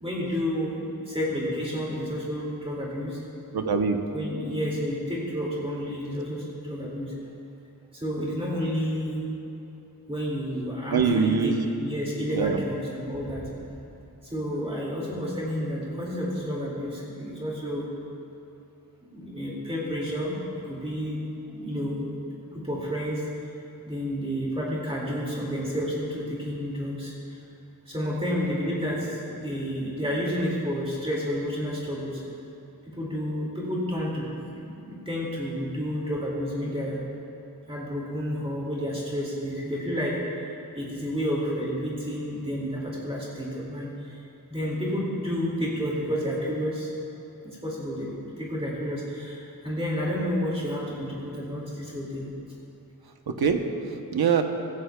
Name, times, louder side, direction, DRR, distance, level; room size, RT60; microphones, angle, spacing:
voice 1, 0.0-3.2 4.1-7.1 7.9-9.2 10.1-13.4 14.2-17.8 19.1-20.4 20.7-21.2 21.5-22.1 22.5-23.2 23.9-27.4 27.9-32.2 32.9-37.0 37.7-40.5 40.7-44.2 44.5-46.9 47.4-52.3, equal, 15° right, -6 dB, 2.1 m, -30 dB
voice 2, 3.5-4.0 10.9-11.6 12.3-12.6 53.3-53.6 54.1-54.4, right 6 dB, 85° right, 5 dB, 0.9 m, -23 dB
16.0 x 15.0 x 2.2 m, 2.8 s
wide cardioid pair, 110°, 36 cm